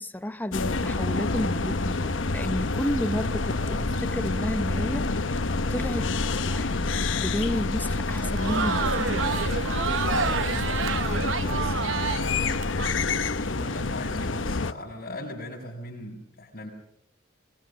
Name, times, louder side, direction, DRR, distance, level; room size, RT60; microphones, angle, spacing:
voice 1, 0.0-6.2 6.5-9.3, left 1 dB, 10° left, 0.8 m, -32 dB
sound 1, 0.5-14.7, left 3 dB, 90° left, 1.0 m, -28 dB
sound 2, 2.6-13.4, equal, 20° right, 5.2 m, -49 dB
Crowd, 8.1-12.9, right 6 dB, 85° right, 0.8 m, -29 dB
voice 2, 10.0-12.7 13.2-16.7, left 1 dB, 50° left, 4.7 m, -39 dB
21.5 x 20.5 x 6.4 m
head